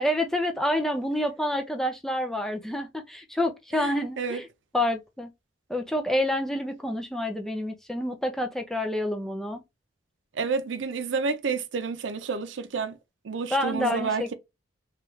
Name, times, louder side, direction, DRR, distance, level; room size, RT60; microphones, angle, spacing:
voice 1, 0.0-4.5 4.7-5.3 5.7-9.6 13.5-14.3, left 1 dB, ahead, 0.3 m, -28 dB
voice 2, 3.7-4.4 10.3-13.0 13.2-14.3, right 5 dB, 85° right, 0.5 m, -30 dB
3.1 x 2.3 x 3.0 m
head